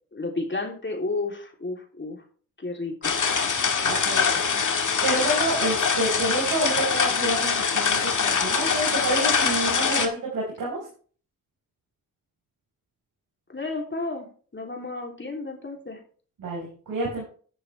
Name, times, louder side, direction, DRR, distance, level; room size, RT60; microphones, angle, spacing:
voice 1, 0.1-2.2 2.6-3.1 5.1-5.3 13.5-16.0, left 3 dB, 35° left, 1 dB, 3.1 m, -32 dB
sound 1, 3.0-10.1, left 6 dB, 60° left, 2.0 m, -23 dB
voice 2, 3.8-4.4 4.7-10.8 16.4-17.2, right 2 dB, 90° right, -4 dB, 4.7 m, -29 dB
10.5 x 10.0 x 3.4 m, 0.42 s
cardioid pair, 50°, 34 cm